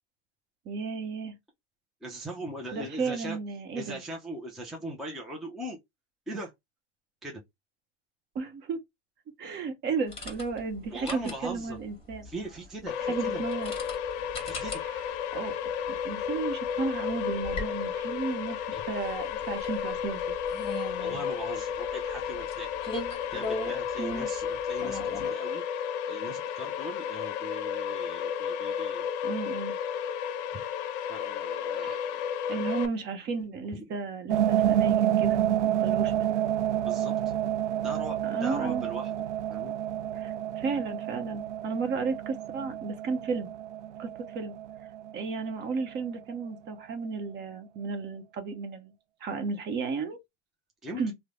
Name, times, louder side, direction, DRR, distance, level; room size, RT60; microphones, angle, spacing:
voice 1, 0.6-1.3 2.7-4.0 8.3-8.8 9.4-12.3 13.0-13.7 14.9-15.0 15.3-15.6 16.0-18.6 18.9-20.2 24.0-24.3 29.2-29.8 31.8-32.0 32.5-36.3 38.2-38.9 40.1-43.5 44.0-44.5 45.1-48.9 49.2-50.2 50.9-51.1, right 4 dB, 30° right, 0.9 m, -33 dB
voice 2, 2.0-3.4 3.7-5.8 6.3-6.5 7.2-7.4 10.9-11.8 12.2-13.4 14.5-14.7 18.7-18.8 21.0-23.0 23.3-25.6 26.1-29.1 30.5-30.6 31.1-32.2 33.7-33.8 36.9-37.3 37.8-39.1 39.5-39.7 50.8-51.1, right 1 dB, ahead, 0.4 m, -40 dB
sound 1, 10.1-25.3, left 2 dB, 15° left, 1.5 m, -41 dB
sound 2, 12.9-32.9, left 8 dB, 55° left, 0.6 m, -33 dB
sound 3, 34.3-46.1, right 11 dB, 90° right, 0.6 m, -29 dB
3.1 x 2.1 x 3.6 m
supercardioid pair, 130°, 33 cm